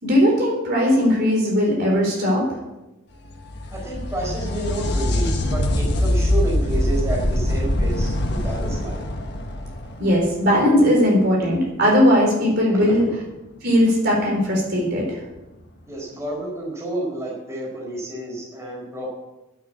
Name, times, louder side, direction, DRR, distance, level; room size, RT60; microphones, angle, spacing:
voice 1, 0.0-2.6 10.0-13.0 13.6-15.1, equal, 50° right, -2 dB, 4.0 m, -18 dB
sound 1, 3.2-10.8 14.2-14.3 15.4-15.5, left 1 dB, 55° left, 1.5 m, -23 dB
voice 2, 3.7-9.0 12.7-12.9 15.9-19.1, right 2 dB, 15° right, -4 dB, 4.5 m, -30 dB
11.5 x 7.0 x 8.1 m, 1.0 s
head